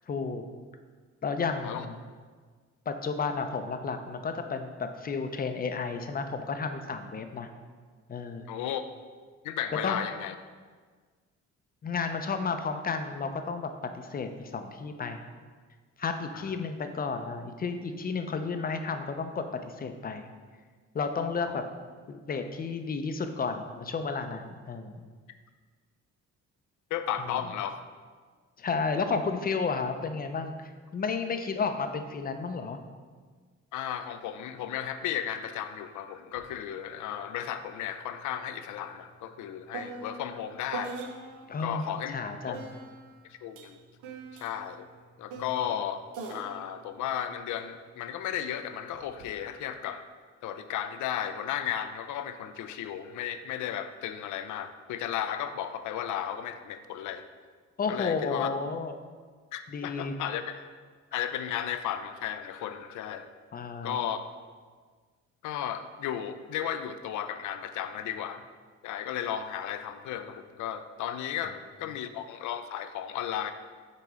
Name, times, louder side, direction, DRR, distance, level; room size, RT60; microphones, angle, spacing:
voice 1, 0.1-0.4 1.2-2.0 2.9-7.5 8.1-8.5 9.8-10.0 11.8-13.7 13.9-15.2 16.0-20.3 20.9-21.6 22.1-25.0 28.6-32.8 41.5-41.8 42.1-42.7 57.8-58.9 59.7-60.2 63.5-64.0 71.4-71.5, left 4 dB, 30° left, 7 dB, 0.5 m, -32 dB
voice 2, 8.5-8.8 9.4-10.3 16.3-16.5 21.5-21.6 26.9-27.8 33.7-41.0 41.6-42.2 42.5-42.6 43.3-43.8 44.4-44.9 45.2-46.0 46.3-50.1 50.4-57.2 57.9-58.5 59.5-60.7 61.1-63.3 63.8-64.2 65.4-68.4 68.8-73.5, left 10 dB, 75° left, 10 dB, 0.5 m, -34 dB
sound 1, 36.4-36.5 36.8-41.6 42.5-48.1 48.9-49.3, right 4 dB, 85° right, 0.7 m, -44 dB
6.7 x 3.0 x 4.8 m, 1.5 s
cardioid pair, 90°, 30 cm